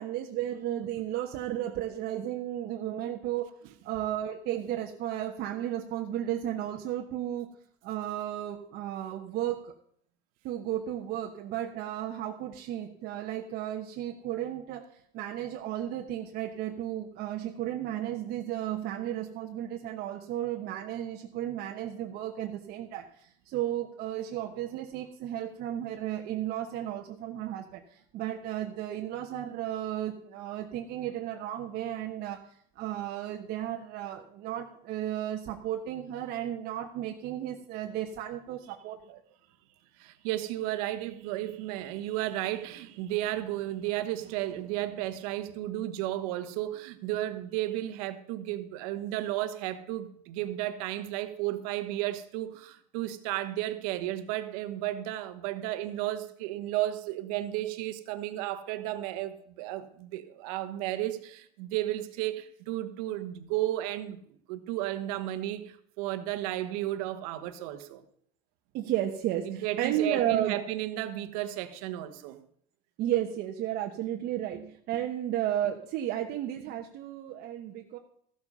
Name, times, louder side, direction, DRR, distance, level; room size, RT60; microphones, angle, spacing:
voice 1, 0.0-7.5 7.8-9.7 10.4-14.8 15.1-32.4 32.8-39.2 68.7-70.6 73.0-78.0, right 12 dB, 55° right, 2 dB, 1.1 m, -34 dB
voice 2, 40.0-68.0 69.4-72.4, right 14 dB, 80° right, 9 dB, 1.3 m, -33 dB
14.0 x 7.4 x 5.5 m, 0.66 s
supercardioid pair, 125°, 19 cm